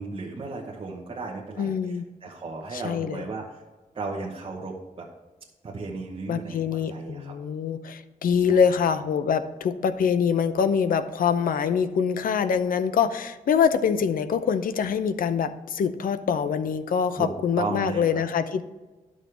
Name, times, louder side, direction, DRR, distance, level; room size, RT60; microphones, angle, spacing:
voice 1, 0.0-3.6 3.9-5.1 5.6-7.3 8.4-8.9 17.1-18.2, right 3 dB, 40° right, -3 dB, 1.0 m, -35 dB
voice 2, 1.6-2.0 2.7-3.2 6.3-18.6, left 7 dB, 80° left, 11 dB, 0.6 m, -24 dB
11.0 x 6.3 x 3.4 m, 1.2 s
wide cardioid pair, 155°, 14 cm